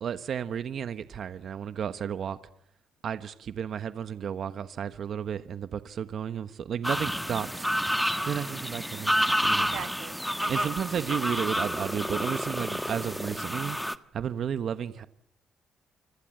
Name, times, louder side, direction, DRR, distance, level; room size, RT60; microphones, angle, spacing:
voice 1, 0.0-2.4 3.0-7.7 8.2-9.8 10.5-13.8 14.1-15.1, right 8 dB, 60° right, 1.2 m, -33 dB
sound 1, 6.8-13.9, equal, ahead, 1.4 m, -29 dB
voice 2, 8.2-8.6 9.5-11.0, right 12 dB, 85° right, 1.5 m, -44 dB
29.0 x 25.0 x 7.9 m
cardioid pair, 90°, 0 cm